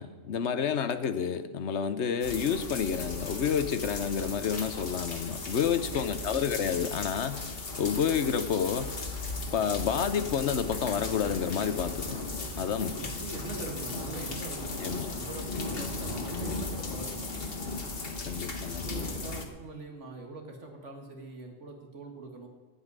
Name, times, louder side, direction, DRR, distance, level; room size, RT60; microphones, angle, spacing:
voice 1, 0.0-7.4 7.8-8.9 9.5-12.2 12.6-13.0 14.8-15.1 18.3-18.9, left 7 dB, 70° left, 12 dB, 1.1 m, -29 dB
sound 1, 2.2-19.5, left 3 dB, 50° left, 1.7 m, -36 dB
voice 2, 5.7-6.4 12.8-17.5 18.7-22.5, right 2 dB, 80° right, 3 dB, 2.1 m, -43 dB
16.0 x 5.6 x 9.6 m, 1.3 s
omnidirectional pair, 1.2 m